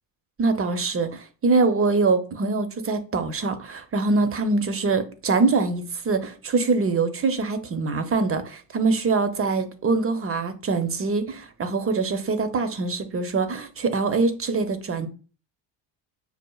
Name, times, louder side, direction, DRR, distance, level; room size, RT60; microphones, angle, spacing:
voice 1, 0.4-15.1, right 3 dB, 30° right, 0.6 m, -24 dB
5.6 x 2.4 x 2.3 m
supercardioid pair, 80°, 45 cm